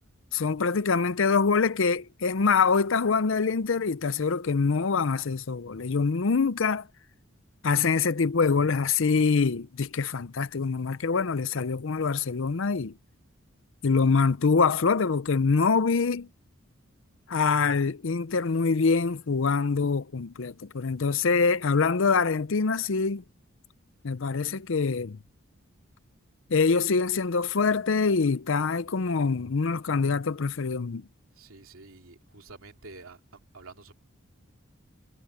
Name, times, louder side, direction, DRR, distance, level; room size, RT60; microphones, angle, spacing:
voice 1, 0.3-6.9 7.6-12.9 13.8-16.3 17.3-23.2 24.0-25.2 26.5-31.0, left 4 dB, 70° left, 0.6 m, -25 dB
voice 2, 31.3-33.9, right 3 dB, 85° right, 2.8 m, -49 dB
head